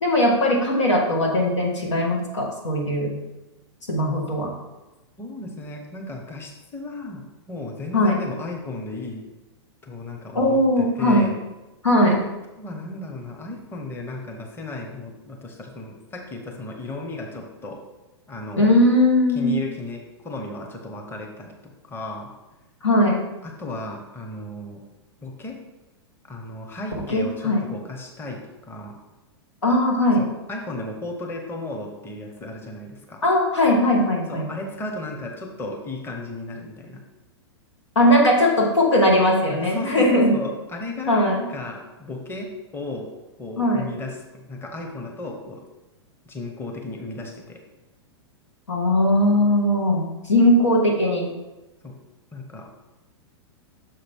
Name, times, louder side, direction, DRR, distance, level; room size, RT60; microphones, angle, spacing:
voice 1, 0.0-3.1 3.9-4.5 7.9-8.2 10.3-11.3 11.8-12.2 18.6-19.6 22.8-23.2 27.0-27.7 29.6-30.2 33.2-34.5 38.0-40.4 41.1-41.4 43.6-43.9 48.7-51.3, left 1 dB, 90° left, 0 dB, 1.8 m, -19 dB
voice 2, 5.2-9.3 9.8-11.4 12.6-17.8 18.3-18.7 19.3-21.5 21.8-22.3 23.4-24.8 25.2-25.6 26.2-29.0 30.1-33.2 34.3-37.0 39.6-43.1 43.4-44.2 44.4-45.6 46.3-47.6 51.8-51.9 52.3-52.7, left 2 dB, 15° left, 2 dB, 1.0 m, -35 dB
6.6 x 5.7 x 3.6 m, 1.0 s
hypercardioid pair, 120°, 15 cm